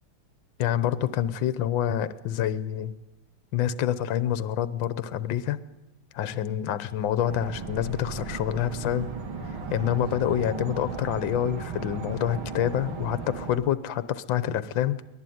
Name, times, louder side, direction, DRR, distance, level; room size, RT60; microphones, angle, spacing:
voice 1, 0.6-2.9 3.5-5.6 6.1-9.1 9.5-15.0, left 10 dB, 65° left, 15 dB, 1.7 m, -27 dB
sound 1, 7.2-13.6, right 4 dB, 75° right, 2.8 m, -36 dB
24.0 x 18.5 x 9.4 m, 0.96 s
omnidirectional pair, 2.3 m